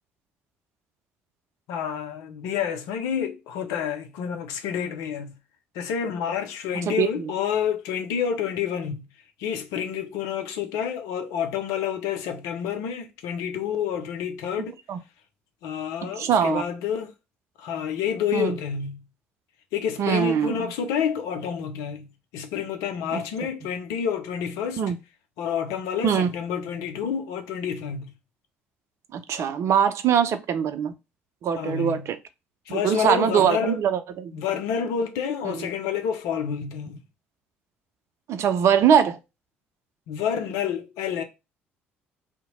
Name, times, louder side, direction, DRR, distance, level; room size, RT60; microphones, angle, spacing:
voice 1, 1.7-5.3 5.7-9.1 9.4-14.8 15.6-17.1 17.6-19.0 19.7-22.1 22.3-24.8 25.4-28.1 31.6-32.1 32.7-33.8 34.3-37.0 40.1-41.2, left 8 dB, 70° left, 0.6 m, -29 dB
voice 2, 6.9-7.3 14.9-15.0 16.0-16.6 18.3-18.6 20.0-20.7 23.1-23.2 24.8-25.0 26.0-26.3 29.1-30.9 31.4-32.2 32.7-34.3 35.4-35.7 38.3-39.2, right 8 dB, 55° right, 0.5 m, -22 dB
2.8 x 2.1 x 4.1 m
hypercardioid pair, 55°, 6 cm